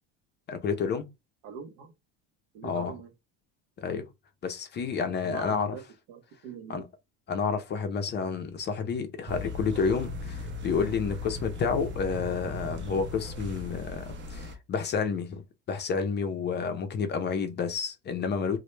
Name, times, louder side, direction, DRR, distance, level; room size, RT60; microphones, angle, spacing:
voice 1, 0.5-1.1 2.6-2.9 3.8-4.0 4.4-5.8 6.7-6.8 7.3-15.4 15.7-18.6, left 5 dB, 30° left, 0.4 m, -30 dB
voice 2, 1.4-1.9 2.5-3.1 4.9-6.8, right 7 dB, 85° right, 0.7 m, -43 dB
sound 1, 9.3-14.6, left 2 dB, 35° right, 0.4 m, -37 dB
2.1 x 2.0 x 3.0 m
cardioid pair, 120°, 36 cm